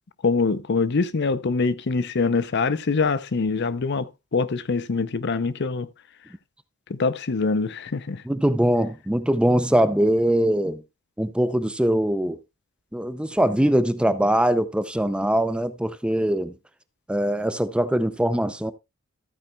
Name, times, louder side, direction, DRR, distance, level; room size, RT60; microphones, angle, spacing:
voice 1, 0.2-5.9 6.9-8.2, left 4 dB, 55° left, 0.6 m, -24 dB
voice 2, 8.3-10.8 11.2-12.4 12.9-16.5 17.1-18.7, right 1 dB, 5° right, 0.5 m, -22 dB
14.0 x 8.9 x 2.3 m
head